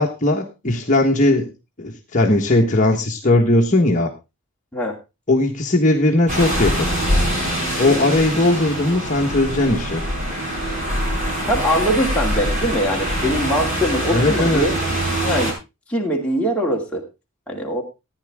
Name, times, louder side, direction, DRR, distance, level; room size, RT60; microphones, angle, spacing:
voice 1, 0.0-1.5 1.8-4.1 5.3-6.9 7.8-10.0 14.1-14.6, left 2 dB, 35° left, 1 dB, 1.4 m, -18 dB
sound 1, 6.3-15.5, equal, 35° right, 5.5 m, -23 dB
voice 2, 11.5-14.8 15.2-15.6 15.9-17.0 17.5-17.8, equal, 5° left, -2 dB, 2.4 m, -22 dB
14.5 x 9.9 x 3.6 m, 0.26 s
head